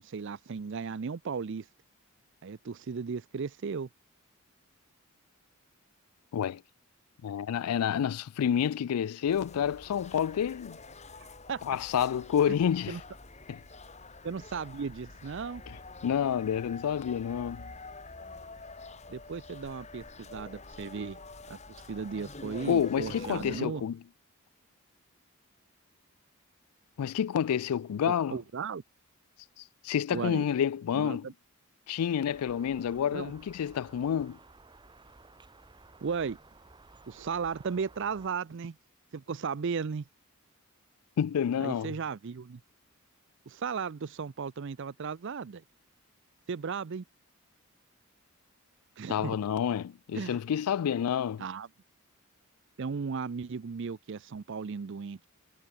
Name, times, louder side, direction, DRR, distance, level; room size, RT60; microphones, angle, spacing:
voice 1, 0.0-1.6 2.4-3.9 11.5-11.6 12.9-13.0 14.2-15.6 19.1-21.2 21.5-21.6 21.9-23.8 28.3-28.8 30.1-30.4 30.9-31.3 33.1-33.3 36.0-36.4 37.1-38.8 39.1-40.0 41.6-42.6 43.5-45.6 46.5-47.0 49.0-49.3 50.1-50.4 51.4-51.7 52.8-55.3, right 5 dB, 55° right, 0.5 m, -35 dB
voice 2, 7.2-10.8 11.6-13.0 13.5-13.6 15.7-15.8 16.0-17.7 22.7-24.0 27.0-28.4 29.8-31.3 31.9-34.4 41.2-42.0 49.1-51.5, left 8 dB, 85° left, 0.3 m, -29 dB
sound 1, 9.3-23.6, left 3 dB, 30° left, 3.1 m, -47 dB
sound 2, 32.3-38.3, right 3 dB, 20° right, 1.0 m, -55 dB
head